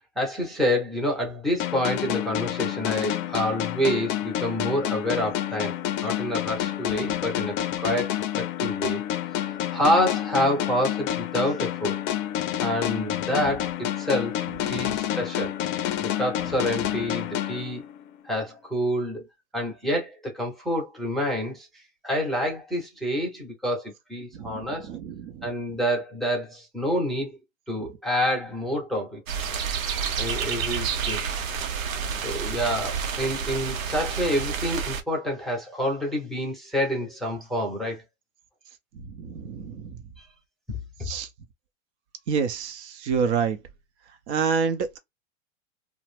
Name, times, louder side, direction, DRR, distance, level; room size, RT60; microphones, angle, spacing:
voice 1, 0.2-5.8 6.0-7.6 7.8-9.0 9.7-12.0 12.6-15.5 16.0-17.8 18.2-19.3 19.5-24.9 25.4-27.4 27.7-29.5 30.2-31.2 32.2-38.0 41.0-41.1, equal, ahead, 0.7 m, -28 dB
sound 1, 1.6-18.2, left 12 dB, 40° left, 0.5 m, -29 dB
voice 2, 14.7-15.0 24.3-25.5 27.8-27.9 39.0-40.0 41.0-41.3 42.3-43.6 44.3-45.0, right 6 dB, 60° right, 0.7 m, -28 dB
sound 2, 29.3-35.0, right 6 dB, 85° right, 0.8 m, -29 dB
2.4 x 2.1 x 3.2 m
hypercardioid pair, 120°, 39 cm